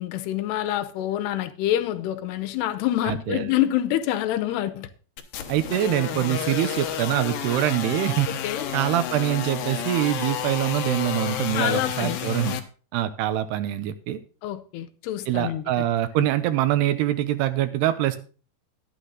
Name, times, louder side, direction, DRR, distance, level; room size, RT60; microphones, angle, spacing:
voice 1, 0.0-4.9 8.3-8.7 11.5-12.2 14.4-15.8, left 12 dB, 85° left, 2.9 m, -26 dB
voice 2, 3.0-3.5 5.5-8.3 8.7-12.6 12.9-14.2 15.3-18.2, right 13 dB, 80° right, 2.9 m, -24 dB
sound 1, 5.2-12.6, left 10 dB, 70° left, 2.5 m, -31 dB
11.5 x 9.1 x 3.9 m
omnidirectional pair, 4.7 m